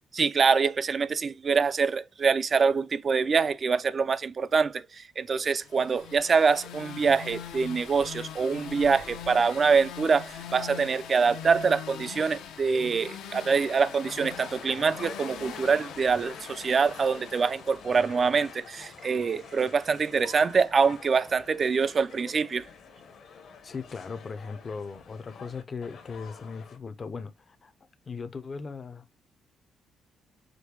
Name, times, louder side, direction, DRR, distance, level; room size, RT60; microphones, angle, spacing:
voice 1, 0.1-22.7, right 5 dB, 40° right, 0.4 m, -25 dB
sound 1, 5.5-18.4, left 9 dB, 90° left, 0.8 m, -42 dB
sound 2, 13.5-26.8, left 5 dB, 65° left, 1.0 m, -47 dB
voice 2, 23.6-27.7 28.1-29.0, left 5 dB, 40° left, 0.5 m, -38 dB
5.1 x 2.2 x 4.6 m
cardioid pair, 90°, 0 cm